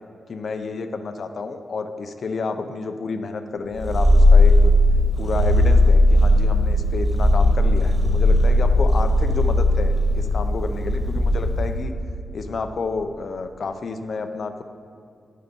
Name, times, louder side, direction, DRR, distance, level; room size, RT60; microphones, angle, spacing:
voice 1, 0.3-4.7 5.2-11.9 12.3-14.6, left 4 dB, 60° left, 8 dB, 0.7 m, -30 dB
Purr, 3.7-11.8, left 1 dB, 15° left, 1.5 m, -17 dB
11.0 x 6.5 x 5.3 m, 2.5 s
cardioid pair, 90°, 0 cm